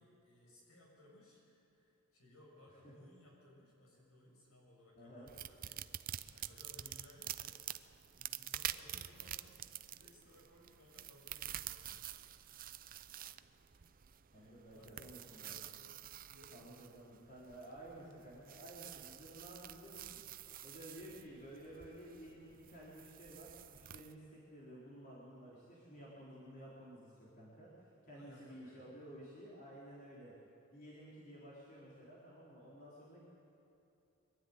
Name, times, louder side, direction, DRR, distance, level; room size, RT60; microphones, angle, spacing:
voice 1, 0.0-5.8 6.3-12.1 14.3-17.2 28.1-28.8, left 1 dB, 70° left, -2 dB, 6.6 m, -63 dB
voice 2, 4.9-5.3 14.3-15.7 16.5-20.2 20.6-27.7 28.0-30.3 30.7-33.3, right 1 dB, 40° left, -7 dB, 3.9 m, -53 dB
sound 1, 5.3-24.1, right 11 dB, 40° right, 0.5 m, -48 dB
23.0 x 12.5 x 9.6 m, 2.8 s
head